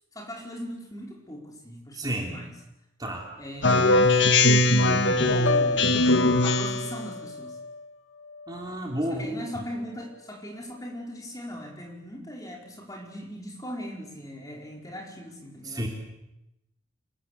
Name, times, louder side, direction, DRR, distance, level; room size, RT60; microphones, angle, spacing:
voice 1, 0.1-2.5 3.4-4.5 4.9-5.9 6.4-7.6 9.0-15.9, equal, 15° left, 0 dB, 4.9 m, -39 dB
voice 2, 1.9-2.4 3.0-3.3 8.5-9.6 15.6-15.9, right 1 dB, 20° right, 0 dB, 3.6 m, -31 dB
Speech synthesizer, 3.6-7.0, left 2 dB, 60° left, 1.9 m, -20 dB
Piano, 5.5-9.4 9.8-10.2, left 4 dB, 80° left, 2.5 m, -33 dB
27.0 x 22.5 x 8.3 m, 0.90 s
head